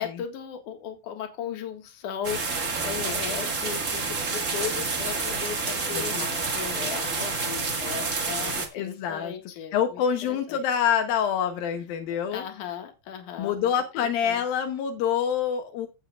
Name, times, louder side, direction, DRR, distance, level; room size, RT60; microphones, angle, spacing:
voice 1, 0.0-10.0 10.3-10.6 12.3-13.7 14.0-14.4, left 8 dB, 65° left, 5 dB, 2.9 m, -36 dB
sound 1, 2.2-8.7, right 4 dB, 45° right, 0.9 m, -29 dB
voice 2, 5.9-6.4 8.7-9.3 9.7-12.4 13.4-15.9, left 8 dB, 80° left, 6 dB, 2.7 m, -26 dB
16.5 x 7.5 x 2.4 m, 0.26 s
omnidirectional pair, 4.1 m